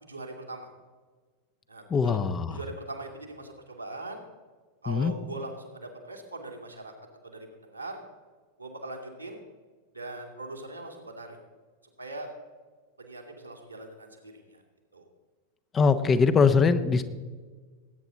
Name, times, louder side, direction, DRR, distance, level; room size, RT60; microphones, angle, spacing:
voice 1, 0.0-0.7 1.7-2.2 2.5-4.2 4.8-6.9 7.2-8.0 8.6-9.4 9.9-11.4 12.0-12.3 13.0-14.6 14.9-15.0, right 2 dB, 85° right, 0 dB, 2.5 m, -41 dB
voice 2, 1.9-2.6 4.9-5.1 15.7-17.0, left 5 dB, 20° left, 11 dB, 0.8 m, -22 dB
20.0 x 9.3 x 4.0 m, 1.4 s
figure-of-eight pair, 90°, 0 cm